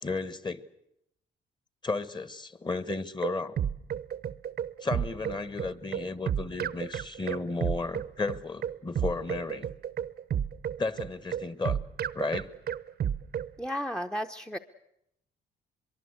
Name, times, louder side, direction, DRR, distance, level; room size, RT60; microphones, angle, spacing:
voice 1, 0.0-0.6 1.8-3.6 4.8-9.7 10.8-11.8 12.1-12.5, left 3 dB, 20° left, 15 dB, 1.4 m, -33 dB
sound 1, 2.9-13.5, right 9 dB, 55° right, 0.9 m, -32 dB
voice 2, 13.6-14.6, equal, 5° left, 8 dB, 0.9 m, -33 dB
24.0 x 23.5 x 8.1 m, 0.79 s
cardioid pair, 90°, 20 cm